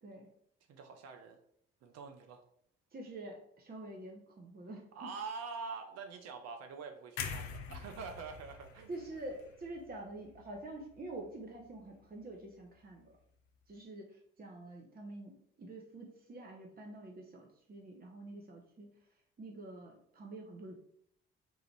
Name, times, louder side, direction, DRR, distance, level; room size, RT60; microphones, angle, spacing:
voice 1, 0.7-1.4 1.8-2.4 4.9-8.9, right 5 dB, 50° right, 5 dB, 0.7 m, -45 dB
voice 2, 2.9-5.1 8.9-13.1 13.7-18.9 19.4-20.8, right 2 dB, 30° right, 1 dB, 0.9 m, -47 dB
sound 1, 7.2-11.2 11.5-11.8, left 6 dB, 70° left, 0.6 m, -45 dB
3.8 x 2.6 x 4.5 m, 0.68 s
figure-of-eight pair, 45°, 32 cm